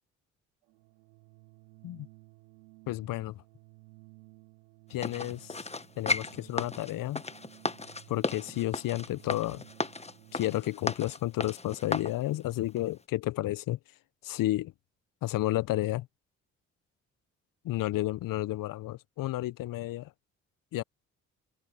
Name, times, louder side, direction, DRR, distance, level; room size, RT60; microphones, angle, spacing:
Organ, 0.6-10.9, right 28 dB, 80° right, 4.4 m, -56 dB
voice 1, 2.9-3.4 4.9-5.6 6.0-7.2 8.1-9.6 10.3-13.8 14.2-14.7 15.2-16.1 17.6-20.1 20.7-20.8, left 16 dB, 60° left, 1.0 m, -31 dB
sound 1, 5.0-12.2 12.7-12.8, left 3 dB, 15° left, 1.6 m, -35 dB
figure-of-eight pair, 45°, 38 cm